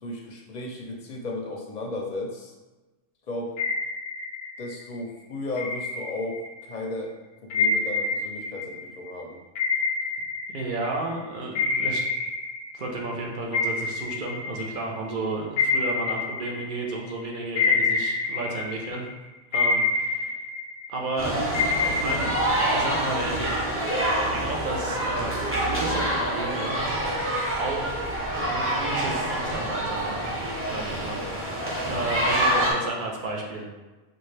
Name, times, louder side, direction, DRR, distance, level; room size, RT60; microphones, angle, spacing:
voice 1, 0.0-2.5 3.3-3.5 4.6-7.1 7.4-9.4, left 2 dB, 50° left, -1 dB, 0.6 m, -34 dB
sound 1, 3.6-4.8 5.6-6.7 7.5-11.1 11.5-13.2 13.5-17.1 17.6-19.1 19.5-21.1 21.5-23.2, left 4 dB, 85° left, 1.0 m, -27 dB
voice 2, 10.5-12.0 12.7-19.0 19.5-20.4 20.9-21.5 21.9-22.4 22.7-23.7 24.2-26.8 27.6-28.1 28.5-30.3 30.6-33.7, right 2 dB, 50° right, -1 dB, 0.7 m, -32 dB
sound 2, 21.2-32.7, right 1 dB, 15° right, 0.5 m, -27 dB
4.3 x 2.4 x 3.2 m, 1.2 s
omnidirectional pair, 1.3 m